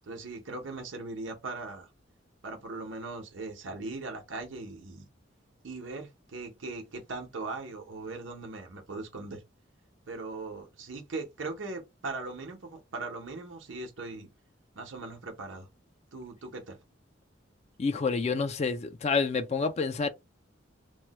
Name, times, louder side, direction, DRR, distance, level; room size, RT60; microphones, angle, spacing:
voice 1, 0.0-1.9 2.4-5.0 5.6-9.4 10.1-14.3 14.8-15.7 16.1-16.8, right 3 dB, 85° right, 0.9 m, -39 dB
voice 2, 17.8-20.1, left 4 dB, 35° left, 0.3 m, -28 dB
3.1 x 2.1 x 2.9 m
head